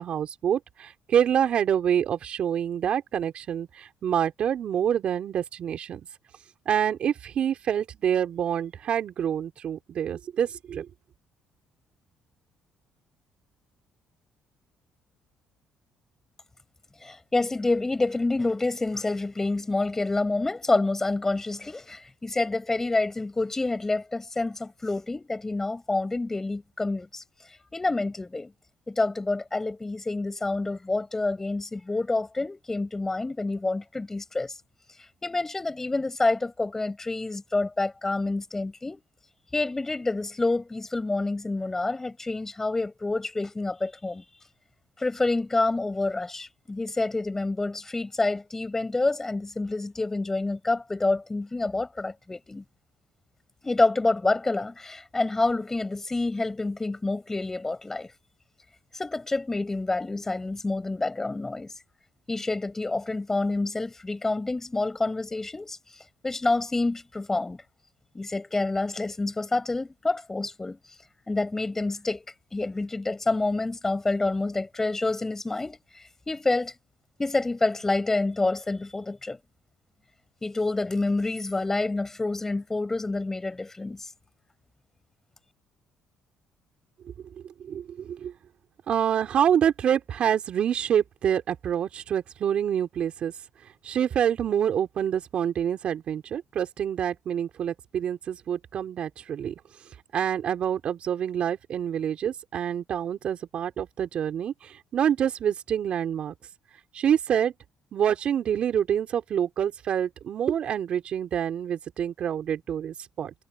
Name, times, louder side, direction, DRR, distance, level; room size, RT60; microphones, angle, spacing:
voice 1, 0.0-6.0 6.7-10.9 87.6-88.3 88.9-93.3 93.8-99.5 100.1-106.3 106.9-107.5 107.9-113.3, right 9 dB, 60° right, 4.0 m, -27 dB
voice 2, 17.0-27.2 27.7-28.5 28.9-34.5 35.2-39.0 39.5-44.2 45.0-52.6 53.6-58.1 58.9-61.7 62.3-65.8 66.2-67.6 68.1-70.8 71.3-72.2 72.5-75.8 76.3-76.7 77.2-79.4 80.4-84.1, left 2 dB, 20° left, 7.6 m, -28 dB
supercardioid pair, 80°, 2 cm